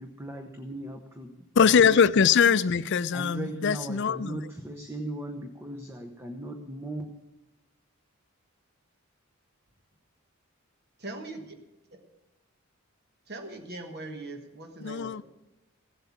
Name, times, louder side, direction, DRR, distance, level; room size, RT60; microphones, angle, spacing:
voice 1, 0.0-2.0 3.1-7.1, right 1 dB, 10° right, 0.8 m, -38 dB
voice 2, 1.6-4.4 14.8-15.2, left 6 dB, 55° left, 0.4 m, -22 dB
voice 3, 11.0-11.6 11.9-12.0 13.3-15.2, right 2 dB, 45° right, 1.3 m, -41 dB
15.5 x 7.9 x 7.2 m
head